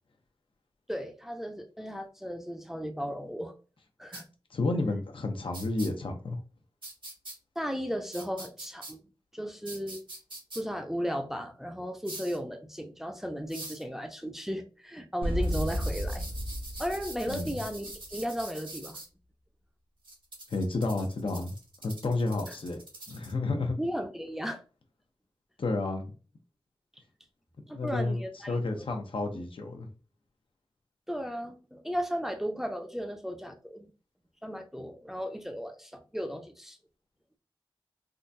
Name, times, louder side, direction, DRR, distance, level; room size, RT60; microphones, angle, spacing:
voice 1, 0.9-3.5 4.0-4.2 7.6-9.0 9.3-10.0 10.6-16.2 16.8-19.0 23.8-24.6 27.7-28.9 29.3-29.4 31.1-33.9 34.4-36.8, equal, 5° right, 0.6 m, -35 dB
sound 1, 4.1-4.2 5.5-5.9 6.8-7.3 8.1-8.9 9.7-10.6 12.0-12.4 13.5-13.8 15.4-19.1 20.0-23.3, right 2 dB, 65° right, 1.6 m, -44 dB
voice 2, 4.5-6.4 17.3-17.5 20.5-21.5 21.8-22.8 23.1-23.8 25.6-26.1 27.7-29.9, left 2 dB, 70° left, 0.7 m, -31 dB
sound 2, 15.2-18.2, equal, 85° right, 0.9 m, -32 dB
3.7 x 2.2 x 2.6 m
wide cardioid pair, 70°, 9 cm